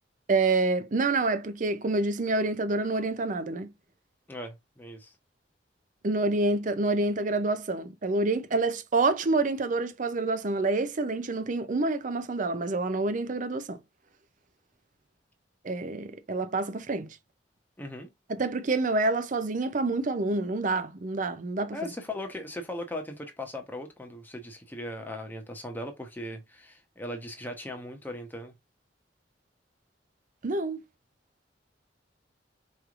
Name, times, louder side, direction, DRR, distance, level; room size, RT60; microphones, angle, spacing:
voice 1, 0.3-3.7 6.0-13.8 15.6-17.1 18.3-21.8 30.4-30.8, right 3 dB, 45° right, 0.5 m, -27 dB
voice 2, 4.3-5.1 17.8-18.1 21.7-28.5, left 1 dB, 10° left, 0.9 m, -38 dB
4.6 x 3.2 x 2.4 m
head